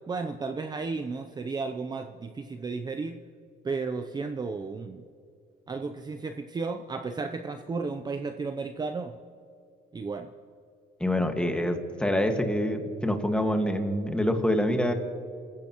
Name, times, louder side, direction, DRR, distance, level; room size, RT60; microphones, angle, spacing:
voice 1, 0.1-3.2 3.6-5.0 5.7-9.2 9.9-10.3, right 4 dB, 25° right, 7 dB, 0.7 m, -33 dB
voice 2, 11.0-14.9, left 1 dB, 5° left, 4 dB, 1.8 m, -26 dB
25.5 x 15.0 x 3.1 m, 2.5 s
cardioid pair, 110°, 17 cm